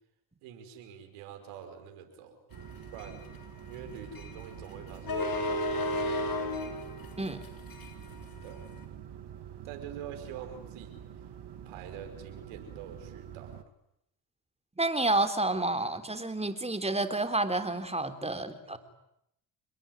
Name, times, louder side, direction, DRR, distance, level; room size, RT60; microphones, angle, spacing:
voice 1, 0.4-2.4 2.9-3.3 3.6-6.2 8.4-8.7 9.6-11.2 11.7-13.5 18.4-18.8, right 8 dB, 90° right, 6 dB, 5.4 m, -46 dB
sound 1, 2.5-13.6, right 9 dB, 60° right, 2.5 m, -46 dB
sound 2, 2.6-8.8, left 1 dB, 45° left, 7.3 m, -34 dB
voice 2, 14.8-18.8, right 2 dB, 15° right, 8 dB, 3.9 m, -30 dB
28.0 x 22.0 x 9.5 m, 0.80 s
supercardioid pair, 70°, 47 cm